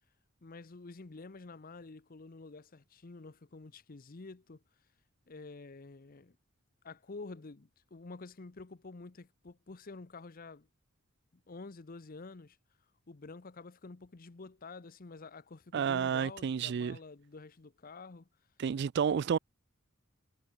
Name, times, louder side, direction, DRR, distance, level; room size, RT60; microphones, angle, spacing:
voice 1, 0.4-4.6 5.3-6.4 6.8-10.7 11.5-12.6 13.1-18.3, left 3 dB, 45° left, 0.8 m, -49 dB
voice 2, 15.7-17.0 18.6-19.4, right 7 dB, 55° right, 0.4 m, -30 dB
head